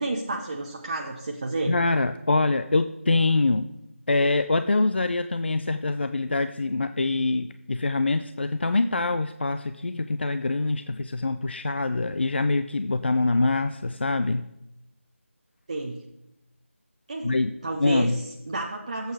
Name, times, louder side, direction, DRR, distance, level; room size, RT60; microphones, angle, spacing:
voice 1, 0.0-1.8 15.7-16.0 17.1-17.4 17.6-19.1, right 2 dB, 30° right, 1 dB, 0.8 m, -31 dB
voice 2, 1.7-3.7 4.1-14.4 17.2-17.5 17.8-18.2, left 3 dB, 50° left, 10 dB, 0.5 m, -24 dB
15.0 x 8.1 x 3.4 m, 0.89 s
figure-of-eight pair, 165°, 7 cm